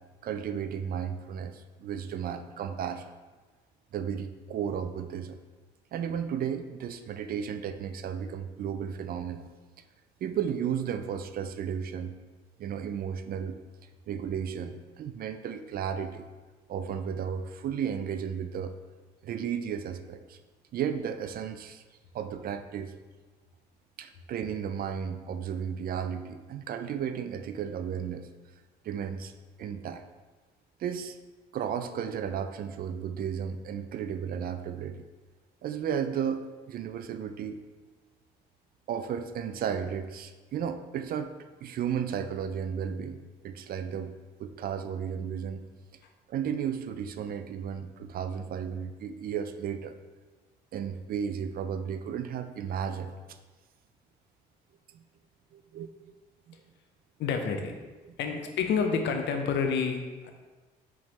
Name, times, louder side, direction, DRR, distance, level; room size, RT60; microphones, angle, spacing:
voice 1, 0.2-3.1 3.9-5.4 5.9-9.5 10.2-12.1 12.6-13.6 14.1-16.3 16.7-18.7 19.2-20.4 20.7-21.8 22.1-22.9 24.0-28.3 28.8-29.3 29.6-30.0 30.8-31.2 31.5-35.1 35.6-37.6 38.9-41.3 41.6-43.2 43.4-44.1 44.4-45.6 46.3-50.0 50.7-53.1 54.9-55.0 55.5-55.9 56.5-56.6 58.0-58.1, right 8 dB, 50° right, 9 dB, 0.4 m, -34 dB
voice 2, 57.2-57.8 58.2-60.3, left 5 dB, 65° left, 5 dB, 0.6 m, -29 dB
4.7 x 3.6 x 3.1 m, 1.3 s
supercardioid pair, 65°, 20 cm